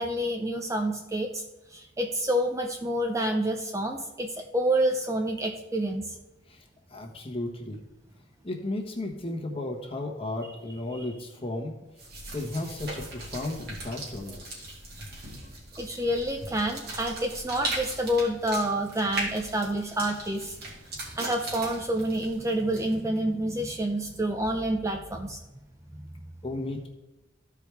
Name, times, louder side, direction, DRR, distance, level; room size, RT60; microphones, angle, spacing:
voice 1, 0.0-1.4 1.7-6.2 15.8-20.6 21.1-25.4, right 1 dB, 15° right, 4 dB, 0.5 m, -28 dB
voice 2, 6.9-7.8 8.4-11.7 12.3-14.7 26.4-26.9, left 2 dB, 30° left, 1 dB, 1.3 m, -34 dB
sound 1, 12.0-23.2, right 2 dB, 50° right, 2.2 m, -39 dB
14.0 x 4.7 x 3.4 m, 1.0 s
head